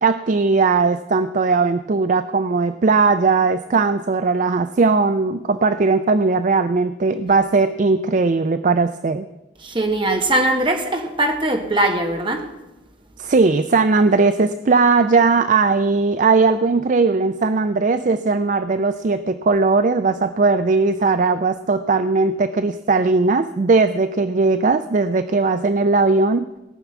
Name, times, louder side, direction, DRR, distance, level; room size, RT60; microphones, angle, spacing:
voice 1, 0.0-9.2 13.2-26.5, right 4 dB, 45° right, 0.4 m, -18 dB
voice 2, 9.6-12.5, right 1 dB, 25° right, 1.3 m, -21 dB
17.5 x 6.1 x 8.1 m
head